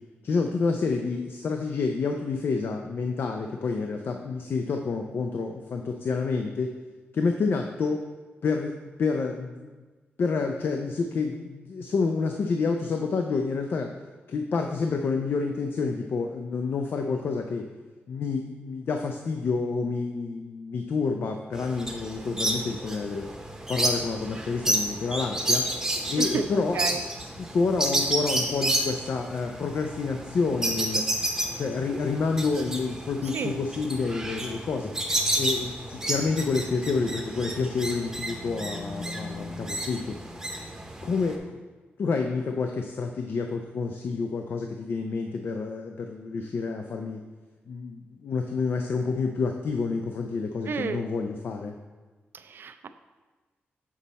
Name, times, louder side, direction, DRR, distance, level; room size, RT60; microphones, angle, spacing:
voice 1, 0.2-6.7 7.1-8.0 8.4-9.8 10.2-13.9 14.3-17.7 18.1-23.3 23.7-25.7 26.1-27.0 27.5-31.1 31.5-34.9 35.4-40.2 41.0-41.6 42.0-47.2 47.7-51.7, left 4 dB, 60° left, 4 dB, 0.4 m, -28 dB
sound 1, 21.5-41.3, right 1 dB, 10° right, 0.8 m, -31 dB
voice 2, 26.2-27.0 33.3-33.6 50.7-51.0 52.3-52.9, right 5 dB, 60° right, 10 dB, 0.4 m, -31 dB
7.3 x 4.1 x 4.1 m, 1.3 s
cardioid pair, 95°, 4 cm